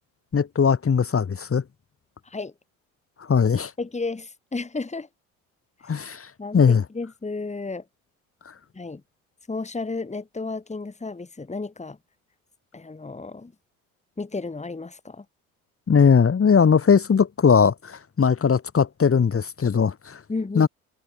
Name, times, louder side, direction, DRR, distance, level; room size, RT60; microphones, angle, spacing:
voice 1, 0.3-1.6 3.3-3.7 5.9-6.8 15.9-20.2 20.5-20.7, left 6 dB, 30° left, 3.3 m, -19 dB
voice 2, 3.8-5.1 6.4-7.8 8.7-9.0 9.5-12.0 12.7-13.5 14.2-15.2 20.3-20.7, left 3 dB, 15° left, 3.3 m, -32 dB
hypercardioid pair, 65°, 43 cm